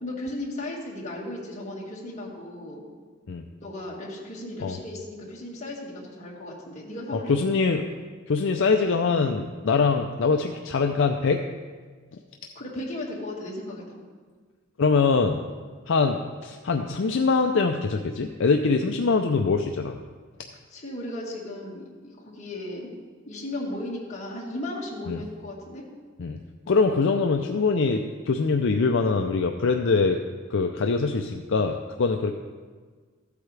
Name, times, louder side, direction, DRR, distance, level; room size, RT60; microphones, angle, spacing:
voice 1, 0.0-2.8 3.6-7.3 12.6-14.0 20.7-22.9 23.3-25.8, left 1 dB, 35° left, -4 dB, 2.0 m, -36 dB
voice 2, 7.3-7.9 8.3-11.4 14.8-15.4 15.9-20.0 25.1-25.2 26.2-26.4 26.7-30.2 30.5-32.3, left 4 dB, 60° left, 4 dB, 0.5 m, -23 dB
14.5 x 8.4 x 3.3 m, 1.5 s
head